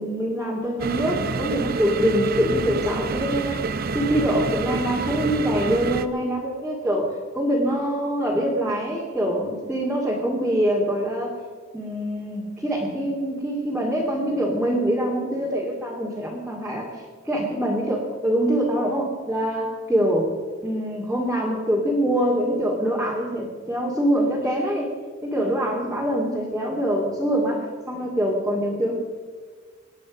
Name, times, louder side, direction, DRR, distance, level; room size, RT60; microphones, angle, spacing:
voice 1, 0.0-11.4 11.7-16.9 17.3-20.3 20.6-24.9 25.2-28.9, equal, 5° right, -5 dB, 2.5 m, -24 dB
sound 1, 0.8-6.1, right 4 dB, 50° right, 0.7 m, -28 dB
26.0 x 9.9 x 5.2 m, 1.5 s
head